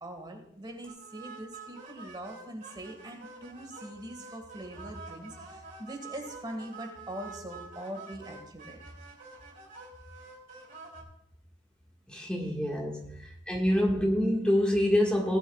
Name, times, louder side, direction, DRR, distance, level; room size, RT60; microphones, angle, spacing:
voice 1, 0.0-8.8 12.4-12.5, right 1 dB, 25° right, 3 dB, 1.7 m, -42 dB
sound 1, 0.9-11.0, right 4 dB, 45° right, 2.9 m, -48 dB
voice 2, 12.1-13.2 13.5-15.4, left 1 dB, 5° left, -2 dB, 1.6 m, -26 dB
18.5 x 10.5 x 2.3 m, 0.71 s
head